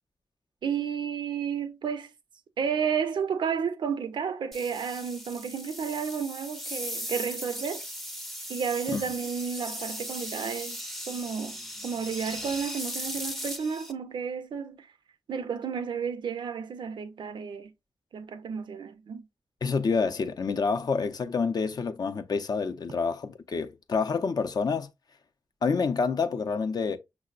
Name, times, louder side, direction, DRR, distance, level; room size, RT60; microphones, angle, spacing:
voice 1, 0.6-2.1 2.6-7.8 8.5-10.8 11.1-14.9 15.3-17.7 18.1-19.3, right 6 dB, 90° right, 0.5 m, -32 dB
sound 1, 4.5-13.9, equal, 5° left, 0.4 m, -38 dB
voice 2, 19.6-24.9 25.6-27.0, left 5 dB, 60° left, 0.5 m, -28 dB
5.7 x 2.0 x 2.4 m
wide cardioid pair, 90°, 8 cm